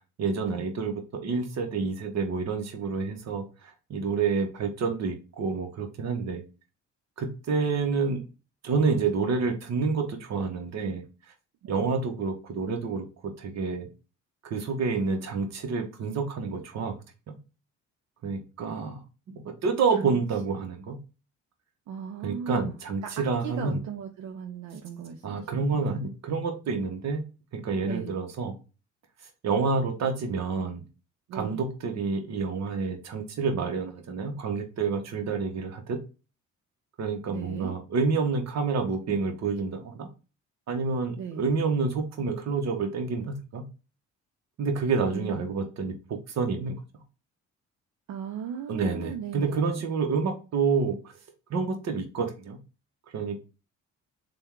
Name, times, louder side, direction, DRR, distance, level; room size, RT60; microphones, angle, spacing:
voice 1, 0.2-6.4 7.2-8.2 8.6-11.0 11.7-13.9 14.4-17.0 17.3-17.4 18.2-19.0 19.3-21.0 22.2-23.8 25.2-27.2 27.5-28.6 29.4-30.8 31.3-36.0 37.0-40.1 40.7-43.7 44.6-46.8 48.7-51.0 51.5-52.6 53.1-53.4, right 4 dB, 60° right, 5 dB, 1.0 m, -28 dB
voice 2, 21.9-22.8 23.0-25.8 27.8-28.1 31.3-31.6 37.3-37.7 41.2-41.5 45.1-45.3 48.1-49.9, right 7 dB, 75° right, 4 dB, 0.6 m, -37 dB
3.5 x 2.3 x 4.4 m, 0.32 s
cardioid pair, 90°, 30 cm